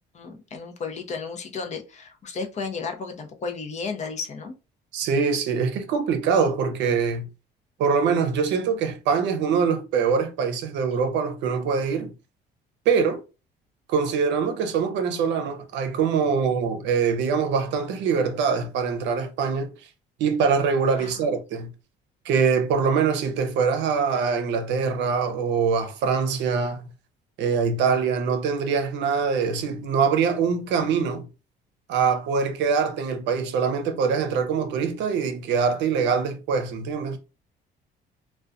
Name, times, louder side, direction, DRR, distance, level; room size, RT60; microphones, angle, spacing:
voice 1, 0.1-4.5 21.0-21.3, left 4 dB, 40° left, 0.6 m, -33 dB
voice 2, 4.9-7.3 7.8-12.1 12.9-13.2 13.9-19.7 20.2-21.7 22.2-26.9 27.4-31.3 31.9-37.2, right 5 dB, 70° right, 0.6 m, -23 dB
2.3 x 2.2 x 2.5 m
cardioid pair, 100°, 19 cm